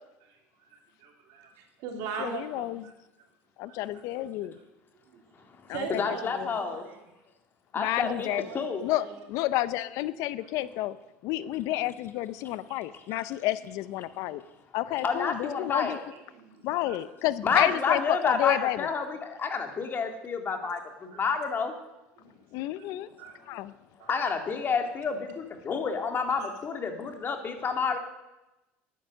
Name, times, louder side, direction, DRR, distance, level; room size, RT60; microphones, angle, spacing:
voice 1, 0.7-2.9 3.6-3.8 5.0-5.2 5.7-7.0 7.9-8.6 8.9-9.2 10.4-10.5 13.1-13.3 16.3-17.0 20.6-20.7 21.1-21.2 22.2-22.3 22.6-23.6 24.0-24.1 25.7-25.8 26.4-26.5, right 6 dB, 70° right, 3 dB, 2.9 m, -41 dB
voice 2, 2.2-2.8 3.6-4.5 5.7-6.5 7.8-8.4 8.8-11.0 11.2-14.4 14.7-16.0 16.6-18.8 22.5-23.1 23.5-23.7, left 15 dB, 65° left, 16 dB, 0.6 m, -30 dB
voice 3, 5.9-6.8 7.7-8.3 8.5-8.8 12.4-12.5 12.9-13.0 14.8-16.0 17.4-21.7 22.8-23.0 24.1-28.0, left 5 dB, 35° left, 5 dB, 2.3 m, -29 dB
11.5 x 10.0 x 6.5 m, 0.97 s
supercardioid pair, 95°, 6 cm